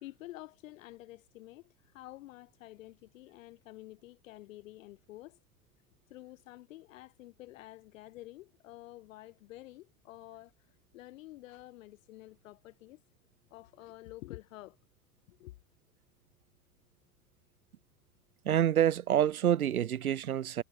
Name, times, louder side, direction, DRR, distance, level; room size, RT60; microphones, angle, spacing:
voice 1, 0.0-5.4 6.1-13.0 13.5-14.8 15.3-15.6, left 17 dB, 65° left, 2.0 m, -50 dB
voice 2, 18.4-20.6, right 10 dB, 80° right, 1.1 m, -27 dB
hypercardioid pair, 85°, 42 cm